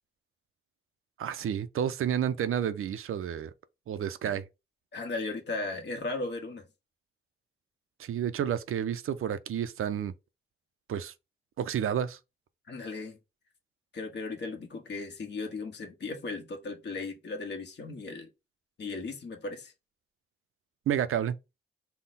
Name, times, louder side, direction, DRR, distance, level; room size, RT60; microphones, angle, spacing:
voice 1, 1.2-3.5 3.9-4.4 8.0-10.1 10.9-11.1 11.6-12.2 20.9-21.4, right 9 dB, 90° right, 0.5 m, -30 dB
voice 2, 4.9-6.7 12.7-13.2 13.9-18.3 18.8-19.7, left 3 dB, 55° left, 1.2 m, -36 dB
5.6 x 2.1 x 4.0 m
wide cardioid pair, 170°, 21 cm